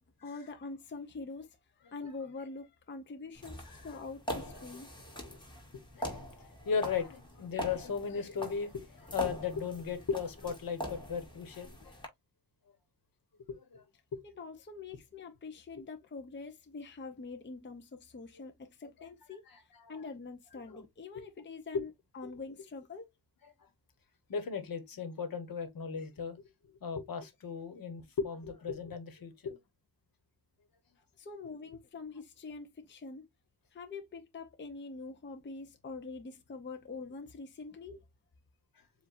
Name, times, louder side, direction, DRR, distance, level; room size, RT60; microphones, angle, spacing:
voice 1, 0.0-4.9 14.2-23.1 31.2-33.3 33.7-38.0, left 4 dB, 30° left, 0.7 m, -45 dB
sound 1, 3.3-12.1, equal, 10° left, 2.1 m, -43 dB
voice 2, 5.7-12.0 13.5-13.8 14.1-14.2 19.5-19.9 20.7-20.8 21.1-21.2 21.7-21.8 22.2-22.3 23.6-23.7 24.3-29.6, left 6 dB, 60° left, 1.4 m, -37 dB
7.3 x 2.6 x 2.5 m
wide cardioid pair, 115°, 39 cm